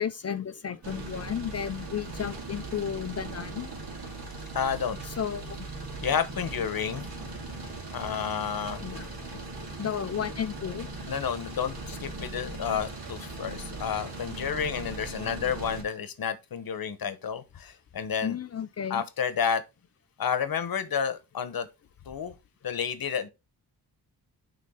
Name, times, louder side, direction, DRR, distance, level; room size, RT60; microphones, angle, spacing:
voice 1, 0.0-3.7 5.0-5.6 8.8-9.1 9.8-10.9 18.2-19.0, left 8 dB, 40° left, 0.4 m, -33 dB
sound 1, 0.8-15.8, right 2 dB, 60° right, 2.5 m, -39 dB
voice 2, 4.5-5.0 6.0-7.1 7.9-8.8 11.1-18.4 18.9-19.6 20.2-21.7 22.1-22.3 22.6-23.3, left 7 dB, 55° left, 1.0 m, -30 dB
9.5 x 3.7 x 3.6 m
wide cardioid pair, 130°, 41 cm